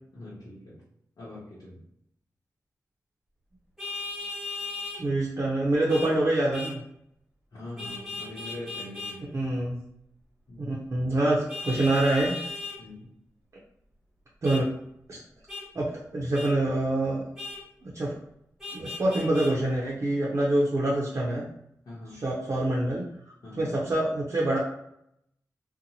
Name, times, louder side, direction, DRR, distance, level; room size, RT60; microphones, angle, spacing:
voice 1, 0.1-0.8 1.2-1.8 7.5-9.4 10.5-10.9 12.8-13.1 21.9-22.3 23.4-23.7, left 1 dB, 85° left, -9 dB, 0.9 m, -43 dB
Vehicle horn car horn honking, 3.8-5.0 5.9-6.1 6.5-6.8 7.8-9.2 11.5-12.8 14.4-14.6 15.5-15.6 16.3-16.5 17.4-17.6 18.6-19.5, left 3 dB, 5° right, 0.9 m, -37 dB
voice 2, 5.0-6.8 9.3-9.8 10.6-12.3 14.4-14.6 15.1-15.2 15.7-15.9 16.1-17.2 17.8-18.2 18.7-21.4 22.2-23.0 23.6-24.6, right 1 dB, 45° right, -5 dB, 0.6 m, -25 dB
2.6 x 2.1 x 2.8 m, 0.76 s
wide cardioid pair, 105°, 7 cm